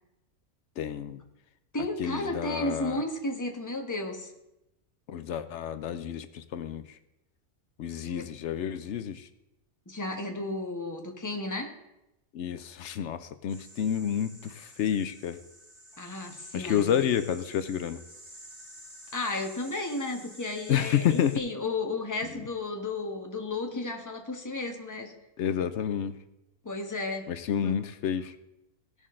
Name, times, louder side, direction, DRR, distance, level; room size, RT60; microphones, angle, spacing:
voice 1, 0.8-1.2 2.0-3.0 5.1-6.8 7.8-9.3 12.3-15.4 16.5-18.0 20.7-21.4 25.4-26.2 27.3-28.4, left 9 dB, 65° left, 12 dB, 0.8 m, -29 dB
voice 2, 1.7-4.3 8.0-8.3 9.9-11.7 16.0-17.1 19.1-25.1 26.6-27.3 27.6-27.8, left 2 dB, 15° left, 2 dB, 1.1 m, -33 dB
sound 1, 13.5-21.4, equal, 70° right, 2.9 m, -50 dB
17.5 x 6.4 x 3.7 m, 0.91 s
omnidirectional pair, 1.4 m